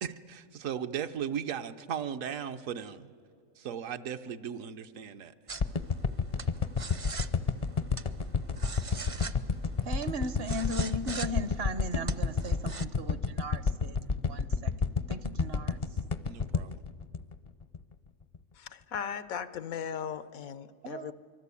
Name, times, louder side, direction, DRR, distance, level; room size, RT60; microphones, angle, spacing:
voice 1, 0.0-3.1 3.6-5.3 16.2-16.8, right 8 dB, 75° right, 9 dB, 1.2 m, -37 dB
sound 1, 5.5-12.9, right 3 dB, 40° right, 0.5 m, -42 dB
sound 2, 5.6-17.9 18.3-18.4, left 5 dB, 40° left, 0.5 m, -30 dB
voice 2, 9.8-14.7 15.1-15.8 20.8-21.1, right 1 dB, 55° right, 14 dB, 0.9 m, -37 dB
voice 3, 18.5-21.1, left 8 dB, 90° left, 14 dB, 1.3 m, -37 dB
25.0 x 23.0 x 8.4 m, 2.3 s
omnidirectional pair, 1.4 m